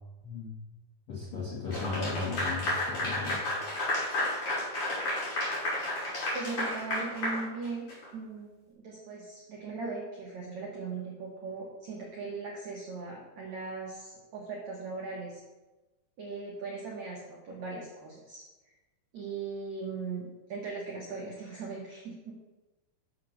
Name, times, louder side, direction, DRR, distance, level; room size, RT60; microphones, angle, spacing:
voice 1, 0.2-0.5 1.1-3.4, left 4 dB, 75° left, -6 dB, 1.2 m, -36 dB
Clapping / Applause, 1.7-8.1, left 1 dB, 35° left, 3.1 m, -32 dB
voice 2, 6.3-7.9 8.1-15.4 16.2-18.4 19.1-22.3, right 4 dB, 85° right, -3 dB, 1.5 m, -39 dB
6.5 x 6.4 x 6.4 m, 1.1 s
omnidirectional pair, 5.4 m